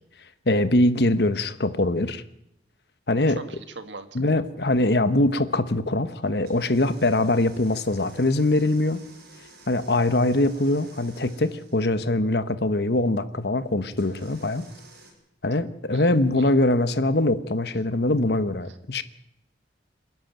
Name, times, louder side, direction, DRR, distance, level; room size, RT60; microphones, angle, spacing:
voice 1, 0.5-2.2 3.1-3.4 4.1-9.0 9.7-14.6 15.4-19.0, left 2 dB, 65° left, 12 dB, 1.2 m, -22 dB
voice 2, 3.4-4.2 15.4-16.1 16.3-16.5 18.9-19.0, right 3 dB, 90° right, 9 dB, 1.9 m, -41 dB
sound 1, 6.4-11.9 14.0-15.1, right 2 dB, 60° right, 5.8 m, -51 dB
27.0 x 11.0 x 9.1 m, 0.81 s
head